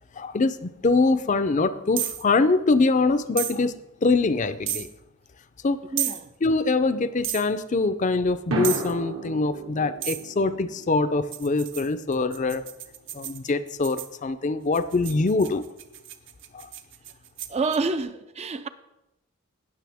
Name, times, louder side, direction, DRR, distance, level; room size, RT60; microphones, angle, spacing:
voice 1, 0.1-3.7 4.0-4.9 5.6-5.8 6.4-12.6 13.1-15.6 16.5-16.7, left 3 dB, 35° left, 0.5 m, -23 dB
sound 1, 2.0-2.2 3.4-3.6 4.7-4.9 6.0-6.2 7.2-7.5 8.6-8.9 10.0-10.3 11.3-14.2 14.7-17.8, right 11 dB, 60° right, 0.7 m, -32 dB
voice 2, 5.9-6.3 17.5-18.7, right 3 dB, 30° right, 0.4 m, -28 dB
sound 2, 8.5-12.8, right 1 dB, 80° right, 1.7 m, -36 dB
18.5 x 6.7 x 3.5 m
head